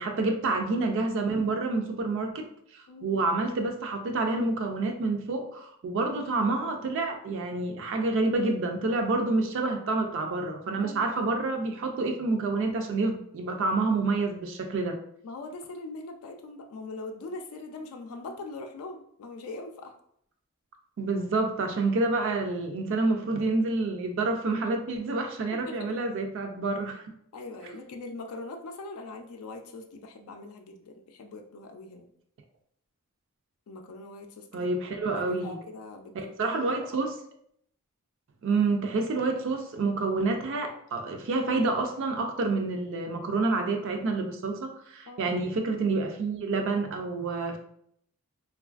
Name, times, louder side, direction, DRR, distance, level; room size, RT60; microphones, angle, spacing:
voice 1, 0.0-2.4 2.7-15.0 21.0-27.1 34.5-35.6 36.1-37.2 38.4-47.6, right 3 dB, 60° right, 4 dB, 0.3 m, -28 dB
voice 2, 2.9-3.2 10.8-11.3 15.2-19.9 25.5-26.0 27.3-32.1 33.7-36.6 45.1-45.4, left 3 dB, 80° left, 4 dB, 0.4 m, -42 dB
3.1 x 2.3 x 2.4 m, 0.68 s
head